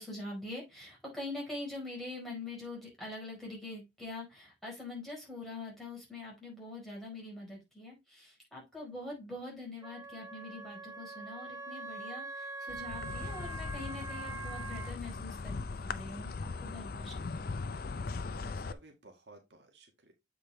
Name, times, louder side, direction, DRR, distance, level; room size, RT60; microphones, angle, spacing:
voice 1, 0.0-17.6, left 2 dB, ahead, -3 dB, 4.6 m, -44 dB
Wind instrument woodwind instrument, 9.8-14.9, right 3 dB, 15° right, 0.9 m, -43 dB
Insect, 12.7-18.7, left 4 dB, 55° left, 0.5 m, -39 dB
voice 2, 18.2-20.1, right 2 dB, 75° right, 3 dB, 1.8 m, -57 dB
7.9 x 5.1 x 3.4 m, 0.22 s
head